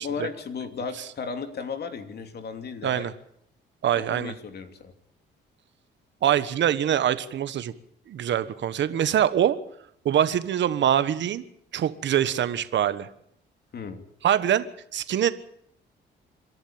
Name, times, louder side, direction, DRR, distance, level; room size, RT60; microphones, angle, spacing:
voice 1, 0.0-3.1 3.9-4.9 13.7-14.0, left 5 dB, 55° left, 7 dB, 2.9 m, -35 dB
voice 2, 3.8-4.3 6.2-7.7 8.1-9.6 10.0-11.4 11.7-13.1 14.2-14.7 14.9-15.3, right 10 dB, 65° right, 13 dB, 1.3 m, -24 dB
27.0 x 11.5 x 8.8 m, 0.70 s
cardioid pair, 90°, 20 cm